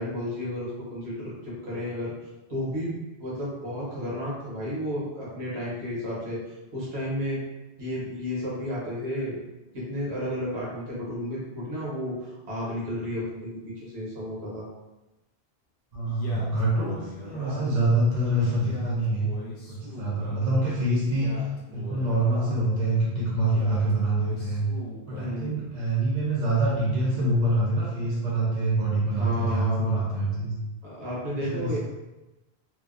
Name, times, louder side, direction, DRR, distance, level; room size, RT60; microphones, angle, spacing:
voice 1, 0.0-2.1 2.5-6.4 6.7-7.4 7.8-9.4 9.7-14.7 25.1-25.7 29.0-30.1 30.8-31.8, equal, 75° right, -6 dB, 1.1 m, -32 dB
voice 2, 15.9-19.3 19.7-24.7 25.1-30.5 31.3-31.8, right 1 dB, 50° right, -6 dB, 0.8 m, -25 dB
Male speech man speaking, 16.0-17.9 18.4-20.4 21.0-22.7 23.4-25.4, left 2 dB, 60° left, 0.8 m, -41 dB
2.7 x 2.1 x 2.3 m, 1.0 s
omnidirectional pair, 1.1 m